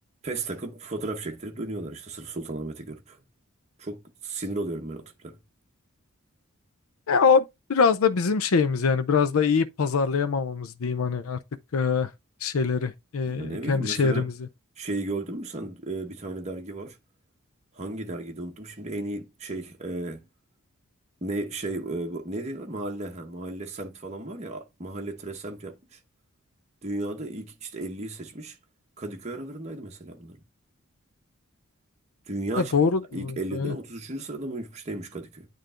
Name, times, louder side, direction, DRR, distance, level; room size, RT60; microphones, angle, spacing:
voice 1, 0.2-3.2 3.8-5.4 13.3-14.3 14.8-17.0 17.7-20.2 21.2-26.0 26.8-28.6 29.0-30.4 32.3-32.7 33.1-35.5, right 2 dB, 30° right, 1.1 m, -34 dB
voice 2, 7.1-7.4 7.7-11.4 11.7-12.1 12.4-14.3 32.6-33.7, left 5 dB, 75° left, 0.5 m, -23 dB
9.0 x 3.2 x 3.7 m
head